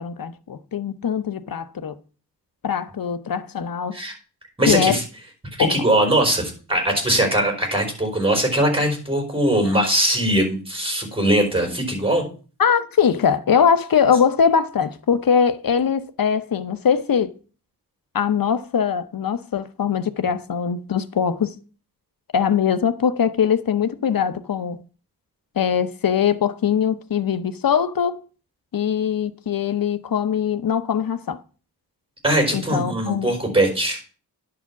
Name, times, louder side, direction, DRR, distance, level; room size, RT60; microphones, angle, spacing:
voice 1, 0.0-1.9 2.6-4.0 4.7-5.0 5.6-5.8 12.6-17.3 18.1-21.6 22.3-24.8 25.6-28.2 28.7-31.4 32.5-33.3, left 7 dB, 60° left, 0.9 m, -21 dB
voice 2, 4.6-5.0 5.6-12.2 32.2-34.0, right 1 dB, 15° right, 4.8 m, -21 dB
11.0 x 5.0 x 7.1 m
wide cardioid pair, 85°, 39 cm